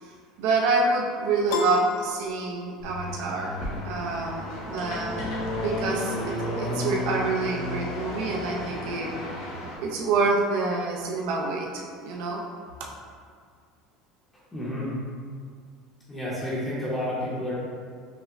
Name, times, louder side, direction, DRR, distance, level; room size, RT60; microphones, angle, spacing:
voice 1, 0.4-9.1 9.8-12.4, right 3 dB, 70° right, -2 dB, 0.4 m, -27 dB
Piano, 1.5-3.0, left 5 dB, 65° left, 0.4 m, -33 dB
sound 1, 2.8-9.8, left 1 dB, 85° left, 1.1 m, -32 dB
voice 2, 14.5-15.0 16.1-17.5, left 1 dB, 10° left, -8 dB, 0.7 m, -30 dB
5.6 x 2.0 x 2.4 m, 2.1 s
cardioid pair, 150°, 0 cm